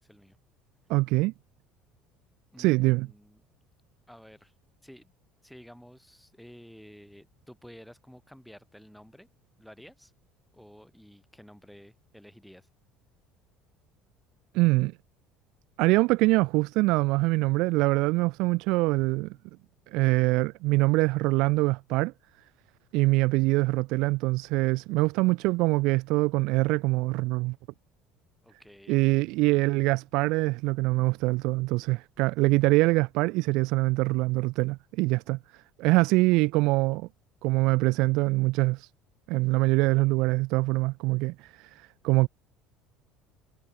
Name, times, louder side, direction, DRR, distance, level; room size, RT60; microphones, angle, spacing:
voice 1, 0.0-0.4 2.5-3.4 4.1-4.5 4.8-5.1 5.4-9.3 9.6-10.1 10.5-12.7 28.4-29.0, equal, ahead, 6.4 m, -51 dB
voice 2, 0.9-1.3 2.6-3.1 14.5-14.9 15.8-19.4 19.9-22.1 22.9-27.6 28.9-37.1 37.4-38.9 39.3-42.3, right 23 dB, 70° right, 0.6 m, -24 dB
cardioid pair, 140°, 0 cm